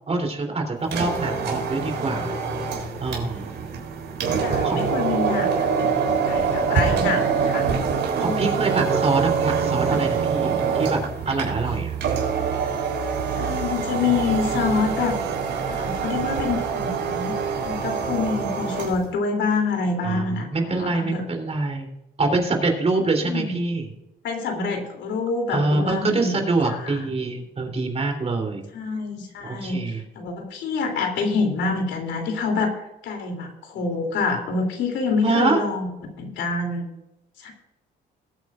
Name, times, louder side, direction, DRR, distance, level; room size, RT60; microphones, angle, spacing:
voice 1, 0.1-2.4 3.0-3.7 4.6-4.8 5.8-5.9 8.2-12.0 20.0-20.2 20.5-21.9 22.2-23.9 25.5-28.7 29.4-30.0 35.2-35.6, right 3 dB, 35° right, 3 dB, 3.4 m, -25 dB
sound 1, 0.8-19.1, right 6 dB, 75° right, 3.7 m, -25 dB
voice 2, 4.4-7.7 8.2-8.5 13.3-15.2 15.7-17.3 17.6-21.2 23.0-23.5 24.2-27.0 28.7-35.9 36.2-36.8 37.4-37.5, left 4 dB, 80° left, 3 dB, 3.2 m, -27 dB
21.0 x 8.9 x 2.5 m, 0.93 s
cardioid pair, 100°, 19 cm